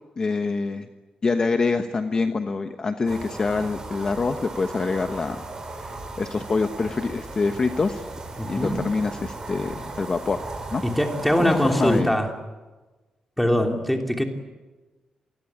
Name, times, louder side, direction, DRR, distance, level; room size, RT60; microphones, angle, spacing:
voice 1, 0.2-0.9 1.2-8.0 8.5-10.4 10.7-10.8 11.4-12.2, left 4 dB, 30° left, 7 dB, 1.2 m, -26 dB
sound 1, 3.1-12.0, right 2 dB, 30° right, 5.0 m, -36 dB
voice 2, 8.4-8.8 10.8-12.3 13.4-14.2, equal, 5° left, 3 dB, 3.0 m, -22 dB
27.5 x 20.5 x 8.8 m, 1.2 s
wide cardioid pair, 145°, 2 cm